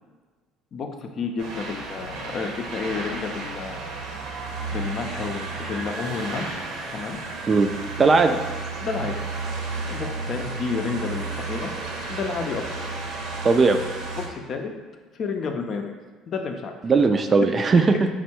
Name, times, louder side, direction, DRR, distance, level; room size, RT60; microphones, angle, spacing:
voice 1, 1.2-4.0 4.7-6.7 6.9-7.2 8.8-9.1 9.9-11.7 12.1-12.6 14.2-14.7 15.1-15.9 16.3-16.8, left 5 dB, 50° left, 4 dB, 0.5 m, -30 dB
sound 1, 1.4-14.3, right 3 dB, 75° right, 0.8 m, -33 dB
voice 2, 8.0-8.4 13.4-13.8 16.8-18.1, right 4 dB, 35° right, 6 dB, 0.3 m, -18 dB
4.4 x 2.2 x 4.4 m, 1.4 s
supercardioid pair, 85°, 0 cm